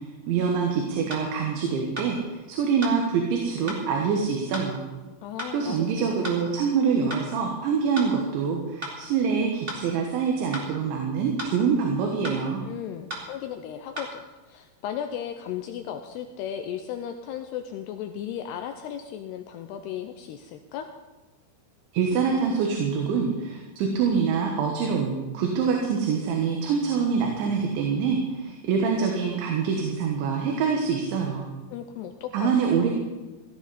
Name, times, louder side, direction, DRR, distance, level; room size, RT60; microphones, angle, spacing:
voice 1, 0.3-4.8 5.5-12.6 21.9-31.5 32.3-32.9, right 6 dB, 75° right, 1 dB, 3.7 m, -25 dB
sound 1, 1.1-1.3 2.0-2.1 2.8-3.0 3.7-3.8 4.5-4.7 5.4-5.5 6.2-6.4 7.1-7.3 8.0-8.1 8.8-9.0 9.7-9.8 10.5-10.7 11.4-11.6 12.2-12.4 13.1-13.3 14.0-14.1, right 1 dB, 25° right, 1.3 m, -34 dB
voice 2, 5.2-6.5 12.6-20.9 31.7-32.9, left 9 dB, 85° left, 6 dB, 2.4 m, -36 dB
15.5 x 15.5 x 4.2 m, 1.2 s
omnidirectional pair, 5.5 m